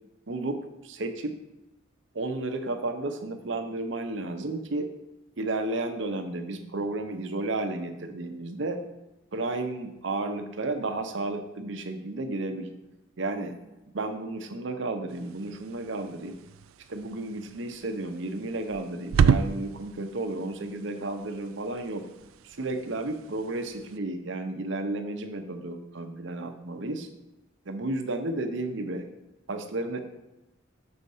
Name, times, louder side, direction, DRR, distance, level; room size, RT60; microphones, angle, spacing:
voice 1, 0.3-1.4 2.1-4.9 5.4-8.8 9.3-12.7 13.2-13.5 13.9-16.4 16.9-22.1 22.4-27.1 27.7-29.0 29.5-30.0, right 2 dB, 60° right, 6 dB, 0.7 m, -32 dB
sound 1, 15.1-24.0, right 6 dB, 80° right, 0.3 m, -32 dB
6.3 x 4.3 x 5.4 m, 0.97 s
head